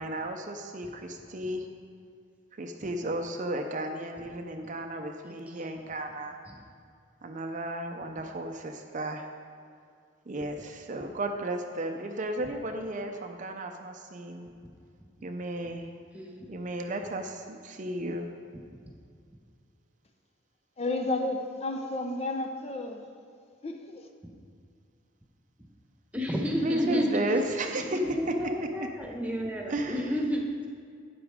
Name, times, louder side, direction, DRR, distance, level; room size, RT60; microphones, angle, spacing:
voice 1, 0.0-1.7 2.6-6.4 7.2-9.3 10.3-14.5 15.2-15.9 16.5-18.3 26.6-28.0 28.3-28.9 29.7-29.9, right 1 dB, 40° right, 0.6 m, -33 dB
voice 2, 5.2-5.6 6.5-6.6 16.1-16.6 18.7-18.8 24.2-24.3 26.1-27.5 27.9-30.7, equal, 5° right, 1.2 m, -32 dB
voice 3, 20.8-23.1 23.6-24.1, left 2 dB, 30° left, 0.6 m, -32 dB
12.0 x 9.2 x 3.6 m
head